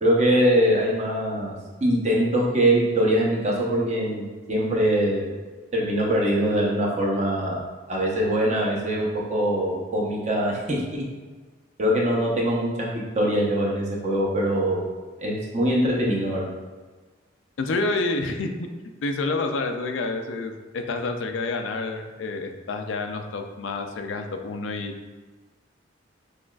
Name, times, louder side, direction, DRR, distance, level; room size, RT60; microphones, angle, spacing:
voice 1, 0.0-1.6 1.8-5.3 5.7-7.6 7.9-11.0 11.8-12.9 13.1-14.8 15.2-16.5, equal, 35° right, -3 dB, 0.8 m, -23 dB
voice 2, 17.6-18.7 19.0-24.9, left 3 dB, 80° left, 5 dB, 0.4 m, -28 dB
6.2 x 2.4 x 2.3 m, 1.4 s
head